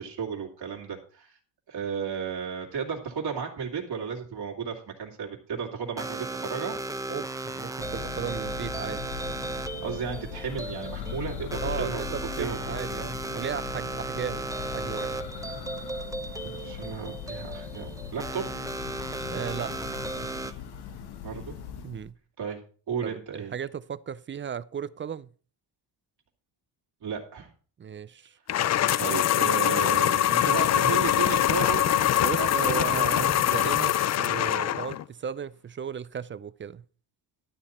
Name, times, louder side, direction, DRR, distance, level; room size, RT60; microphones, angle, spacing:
voice 1, 0.0-1.4 1.7-6.8 9.8-12.0 12.4-12.6 16.4-18.5 21.2-21.6 22.4-22.6 22.9-23.5 27.0-27.5 29.0-33.5, right 6 dB, 65° right, 2.3 m, -34 dB
sound 1, 6.0-20.5, right 2 dB, 10° right, 0.8 m, -35 dB
voice 2, 7.1-9.2 11.6-15.1 19.3-19.7 21.8-22.1 23.0-25.3 27.8-28.4 32.2-36.8, right 7 dB, 30° right, 0.4 m, -35 dB
Church bell, 7.8-22.1, left 9 dB, 65° left, 1.3 m, -39 dB
sound 2, 28.5-35.0, left 12 dB, 40° left, 0.4 m, -23 dB
12.5 x 8.5 x 4.3 m
cardioid pair, 130°, 42 cm